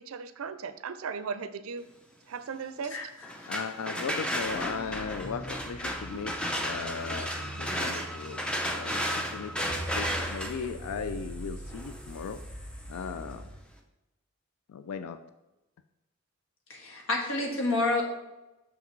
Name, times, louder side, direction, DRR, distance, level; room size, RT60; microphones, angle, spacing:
voice 1, 0.0-1.9 2.3-2.9, right 5 dB, 75° right, 12 dB, 0.4 m, -37 dB
voice 2, 2.9-3.5 4.6-4.7 16.7-18.0, left 2 dB, 70° left, 1 dB, 1.4 m, -30 dB
sound 1, 3.2-13.1, equal, 5° left, 0.5 m, -34 dB
voice 3, 3.5-8.4 8.7-12.4 12.9-13.5 14.7-15.2, left 6 dB, 85° left, 10 dB, 0.4 m, -37 dB
sound 2, 4.4-13.6, right 1 dB, 40° left, 1.1 m, -42 dB
6.2 x 5.8 x 3.1 m, 1.0 s
head